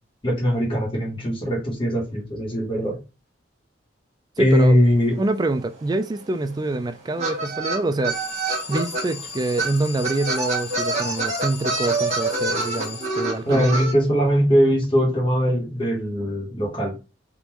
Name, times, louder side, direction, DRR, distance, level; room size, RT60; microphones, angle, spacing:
voice 1, 0.2-3.0 4.4-5.2 13.5-17.0, equal, 30° left, 1.2 m, -20 dB
voice 2, 4.4-4.8 5.2-8.2 8.7-13.8, right 2 dB, 20° right, 0.3 m, -26 dB
sound 1, 5.5-5.6 5.7-9.0 9.6-9.7 10.0-13.9, right 3 dB, 35° right, 1.2 m, -26 dB
Alarm, 8.1-13.7, left 5 dB, 55° left, 0.8 m, -37 dB
3.7 x 2.5 x 2.9 m
head